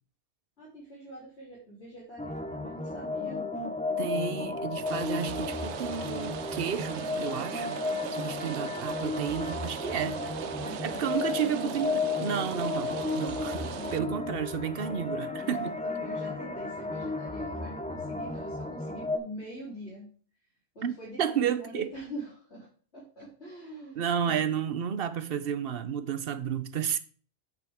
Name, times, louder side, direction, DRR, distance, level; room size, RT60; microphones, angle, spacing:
voice 1, 0.6-3.5 8.2-8.6 10.6-11.8 13.0-13.3 13.7-14.2 15.4-20.1 20.8-24.4, equal, 75° left, 3.7 m, -44 dB
sound 1, 2.2-19.2, left 3 dB, 10° left, 0.7 m, -34 dB
voice 2, 4.0-7.8 8.1-10.2 10.8-15.8 20.8-20.9 21.2-21.9 24.0-27.0, right 8 dB, 60° right, 1.0 m, -32 dB
Rain, 4.9-14.0, right 10 dB, 85° right, 0.9 m, -39 dB
8.3 x 7.3 x 3.6 m
omnidirectional pair, 1.1 m